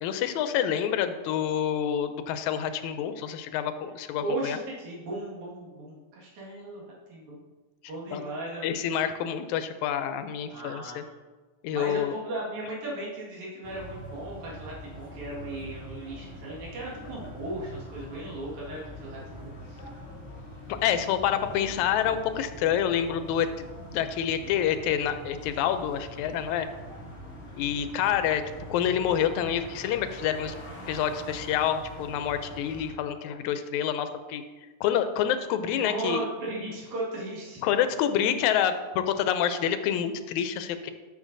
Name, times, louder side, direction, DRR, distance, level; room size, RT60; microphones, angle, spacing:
voice 1, 0.0-4.6 8.1-8.2 8.6-11.0 11.6-12.1 20.8-23.5 23.9-26.7 27.6-28.4 28.7-30.6 30.9-34.4 34.8-36.2 37.6-40.9, left 9 dB, 85° left, 10 dB, 1.9 m, -27 dB
voice 2, 4.2-6.8 7.1-7.4 7.9-8.7 10.5-11.1 11.7-19.9 35.9-37.6, right 2 dB, 75° right, -6 dB, 3.2 m, -36 dB
sound 1, 13.6-32.9, equal, 60° left, 0.6 m, -43 dB
12.0 x 6.1 x 2.6 m, 1.3 s
omnidirectional pair, 3.3 m